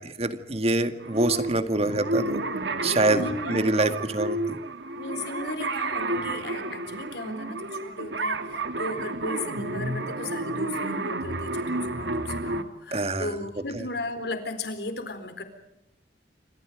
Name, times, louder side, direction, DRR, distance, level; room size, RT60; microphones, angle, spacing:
voice 1, 0.0-2.4 2.8-4.6 12.9-13.4, right 2 dB, 35° right, 9 dB, 2.0 m, -25 dB
sound 1, 1.0-12.6, right 2 dB, 80° right, 2.1 m, -31 dB
voice 2, 3.1-3.7 5.0-15.4, left 2 dB, 65° left, 9 dB, 4.2 m, -36 dB
28.0 x 26.5 x 5.1 m, 0.89 s
head